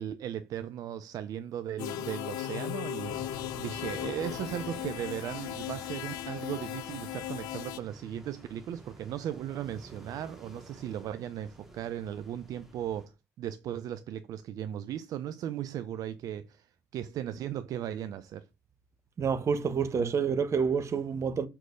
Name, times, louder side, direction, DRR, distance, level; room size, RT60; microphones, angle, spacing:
voice 1, 0.0-18.5, right 10 dB, 60° right, 0.6 m, -37 dB
sound 1, 1.8-7.8, left 14 dB, 75° left, 0.6 m, -37 dB
sound 2, 3.0-13.1, right 1 dB, 5° right, 2.7 m, -49 dB
voice 2, 19.2-21.5, right 6 dB, 45° right, 1.2 m, -28 dB
6.3 x 4.5 x 5.1 m
hypercardioid pair, 55°, 7 cm